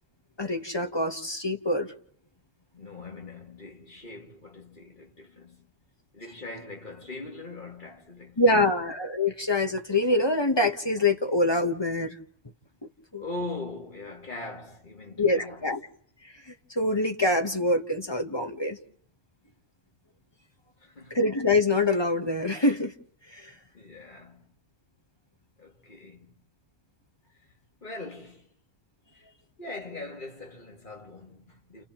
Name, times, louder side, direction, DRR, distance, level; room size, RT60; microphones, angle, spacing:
voice 1, 0.4-1.9 8.4-12.2 13.1-13.2 15.2-15.8 16.5-18.8 21.1-22.9 23.3-23.5, left 2 dB, 25° left, 0.9 m, -25 dB
voice 2, 2.7-5.7 6.1-8.8 13.2-15.7 20.8-21.2 23.7-24.5 25.6-26.4 27.3-27.5 27.8-28.5 29.1-29.3 29.6-31.8, left 2 dB, 40° left, 2.4 m, -41 dB
30.0 x 29.5 x 3.0 m
omnidirectional pair, 1.3 m